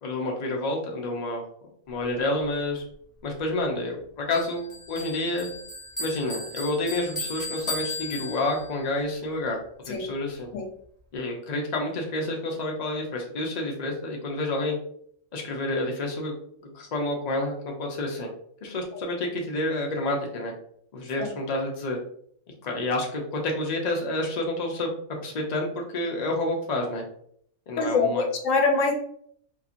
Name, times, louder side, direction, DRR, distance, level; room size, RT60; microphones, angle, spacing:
voice 1, 0.0-1.4 1.9-2.8 3.2-5.5 6.0-9.6 9.9-10.5 11.1-14.8 15.3-16.3 16.6-18.3 18.6-20.5 20.9-22.0 22.6-24.9 25.2-27.0 27.7-28.3, left 2 dB, 45° left, 0 dB, 0.5 m, -29 dB
Bell, 4.3-8.8, left 2 dB, 25° left, 0.9 m, -36 dB
voice 2, 27.8-28.9, left 4 dB, 70° left, 4 dB, 0.9 m, -24 dB
2.8 x 2.8 x 2.5 m, 0.64 s
omnidirectional pair, 1.5 m